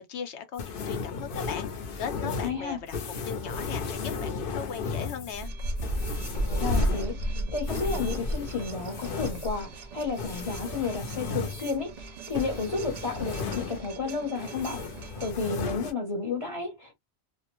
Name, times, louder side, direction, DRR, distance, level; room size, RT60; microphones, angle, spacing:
voice 1, 0.0-3.0 3.3-5.5, left 8 dB, 90° left, 1.0 m, -38 dB
sound 1, 0.6-14.1 14.3-15.9, left 4 dB, 60° left, 0.8 m, -35 dB
voice 2, 2.2-2.8 6.5-16.9, left 4 dB, 35° left, 0.8 m, -32 dB
sound 2, 5.3-15.3, right 1 dB, 50° right, 0.5 m, -34 dB
2.4 x 2.1 x 2.9 m
omnidirectional pair, 1.1 m